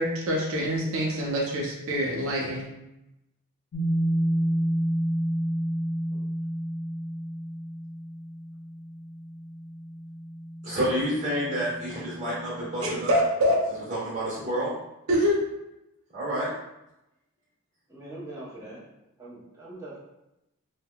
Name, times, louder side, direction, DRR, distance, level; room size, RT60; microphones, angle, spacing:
voice 1, 0.0-2.7 12.8-13.6 15.1-15.4, equal, 65° right, -3 dB, 0.6 m, -25 dB
sound 1, 3.7-13.2, right 1 dB, 65° left, 0.4 m, -31 dB
voice 2, 10.6-13.2 13.9-14.8 16.1-16.5, equal, 30° right, -8 dB, 1.4 m, -29 dB
voice 3, 17.9-18.8 19.2-20.0, right 1 dB, 15° right, -7 dB, 0.7 m, -42 dB
3.3 x 2.2 x 2.2 m, 0.91 s
head